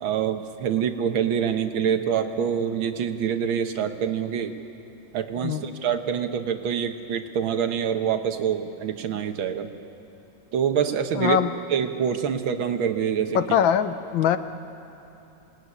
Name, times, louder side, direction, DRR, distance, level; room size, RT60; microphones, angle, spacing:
voice 1, 0.0-4.5 5.1-9.7 10.5-11.4 11.7-13.4, right 8 dB, 85° right, 7 dB, 2.0 m, -26 dB
voice 2, 11.2-11.5 13.4-14.4, left 9 dB, 75° left, 11 dB, 1.6 m, -22 dB
27.0 x 19.0 x 9.7 m, 2.8 s
omnidirectional pair, 2.2 m